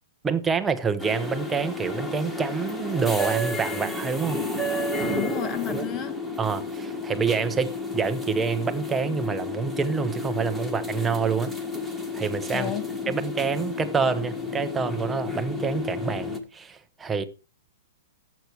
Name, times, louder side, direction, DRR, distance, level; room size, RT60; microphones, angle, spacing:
voice 1, 0.2-4.4 5.7-5.8 6.4-11.5 12.1-12.7 13.1-17.2, right 5 dB, 10° right, 0.8 m, -27 dB
sound 1, 1.0-16.4, left 2 dB, 5° left, 1.4 m, -31 dB
voice 2, 5.1-6.2 12.5-13.1, left 11 dB, 25° left, 1.4 m, -32 dB
11.5 x 8.3 x 4.5 m
hypercardioid pair, 155°, 0 cm